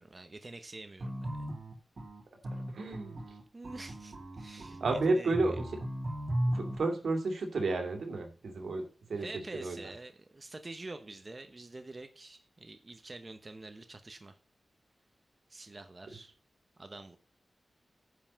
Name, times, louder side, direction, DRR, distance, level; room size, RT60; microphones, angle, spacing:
voice 1, 0.0-1.5 3.5-5.3 9.2-14.4 15.5-16.3 16.8-17.2, right 2 dB, 30° right, 7 dB, 0.9 m, -47 dB
sound 1, 1.0-6.8, right 1 dB, 50° right, 3.0 m, -36 dB
voice 2, 2.5-3.2 4.7-5.7 6.5-9.3 9.5-9.9, right 3 dB, 80° right, 4 dB, 2.6 m, -32 dB
9.8 x 5.7 x 7.4 m, 0.37 s
wide cardioid pair, 125°, 0 cm